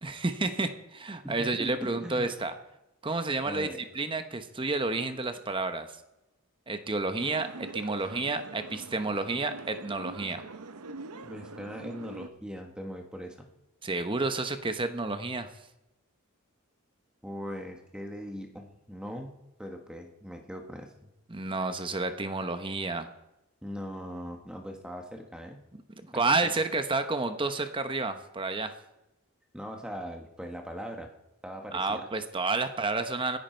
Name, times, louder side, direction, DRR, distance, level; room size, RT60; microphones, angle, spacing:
voice 1, 0.0-2.5 3.0-3.7 3.9-5.9 6.7-10.4 13.8-15.5 21.3-23.1 26.1-28.7 31.7-33.4, right 3 dB, 20° right, 9 dB, 0.9 m, -30 dB
voice 2, 1.2-2.3 3.5-3.8 11.2-13.5 17.2-20.9 23.6-25.6 26.1-26.5 29.5-31.1 31.4-32.0, equal, 5° right, 3 dB, 1.4 m, -40 dB
sound 1, 7.2-12.3, right 3 dB, 90° right, 0.9 m, -44 dB
23.5 x 10.5 x 4.5 m, 0.94 s
head